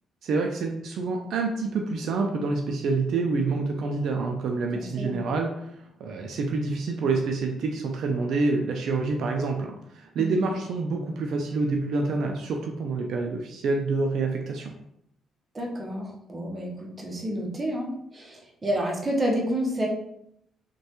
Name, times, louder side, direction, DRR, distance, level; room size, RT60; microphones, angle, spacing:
voice 1, 0.2-5.7 6.0-14.7, right 3 dB, 70° right, 2 dB, 0.3 m, -27 dB
voice 2, 4.7-5.2 10.2-10.4 15.5-19.9, equal, 25° right, -1 dB, 0.8 m, -29 dB
3.1 x 2.2 x 2.9 m, 0.76 s
cardioid pair, 90°, 0 cm